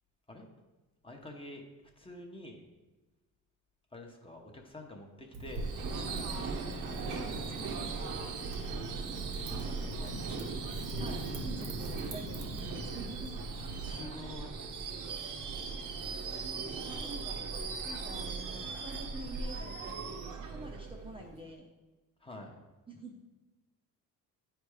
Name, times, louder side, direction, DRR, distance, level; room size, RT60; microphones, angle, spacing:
voice 1, 1.0-2.6 3.9-6.6 9.3-11.0 13.8-14.5 22.2-22.6, left 1 dB, 15° left, 1 dB, 0.8 m, -48 dB
Wind / Fire, 5.3-13.9, right 1 dB, 90° right, 1.4 m, -42 dB
Subway metro underground / Screech, 5.5-21.4, right 4 dB, 65° right, 0.9 m, -39 dB
voice 2, 7.1-7.9 11.0-12.6 12.9-13.3 13.6-13.8 16.9-17.5 17.8-21.7 22.9-23.2, right 1 dB, 15° right, 0 dB, 0.6 m, -47 dB
9.0 x 3.4 x 4.8 m, 1.2 s
cardioid pair, 125°, 34 cm